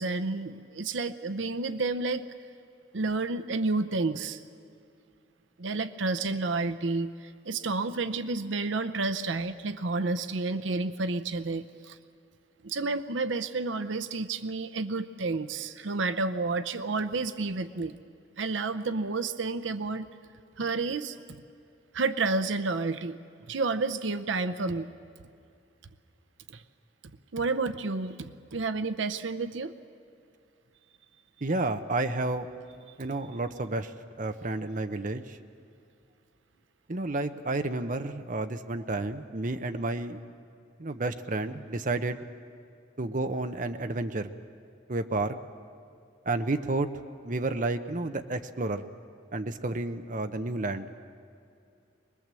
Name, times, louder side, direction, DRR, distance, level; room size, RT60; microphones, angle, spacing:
voice 1, 0.0-2.3 2.9-4.4 5.6-12.0 12.6-18.0 18.4-20.1 20.6-21.2 21.9-23.2 23.5-24.9 26.5-26.6 27.3-29.7, right 3 dB, 80° right, 12 dB, 0.7 m, -30 dB
voice 2, 31.4-32.5 33.0-33.9 34.2-35.4 36.9-40.2 40.8-42.2 43.0-44.3 44.9-45.4 46.3-46.9 47.2-48.8 49.3-50.9, right 2 dB, 45° right, 8 dB, 0.8 m, -31 dB
23.5 x 20.5 x 7.6 m, 2.4 s
head